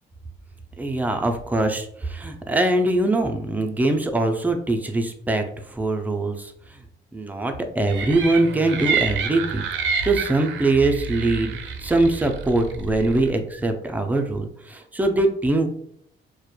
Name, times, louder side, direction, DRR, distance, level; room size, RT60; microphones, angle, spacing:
voice 1, 0.8-6.8 7.1-15.7, right 2 dB, 10° right, 5 dB, 0.3 m, -23 dB
sound 1, 7.9-13.3, right 5 dB, 75° right, 0.4 m, -28 dB
2.8 x 2.1 x 2.3 m, 0.67 s
cardioid pair, 90°, 20 cm